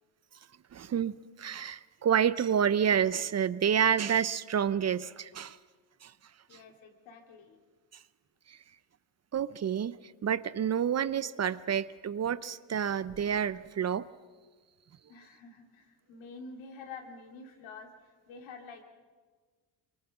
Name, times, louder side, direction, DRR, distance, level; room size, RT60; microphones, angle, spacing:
voice 1, 0.7-5.6 6.0-6.1 8.5-8.6 9.3-10.0 10.2-14.1, right 8 dB, 35° right, 17 dB, 0.6 m, -29 dB
voice 2, 6.5-7.6 15.1-18.8, left 4 dB, 80° left, 3 dB, 2.9 m, -48 dB
24.5 x 23.5 x 6.0 m, 1.5 s
supercardioid pair, 80°, 45 cm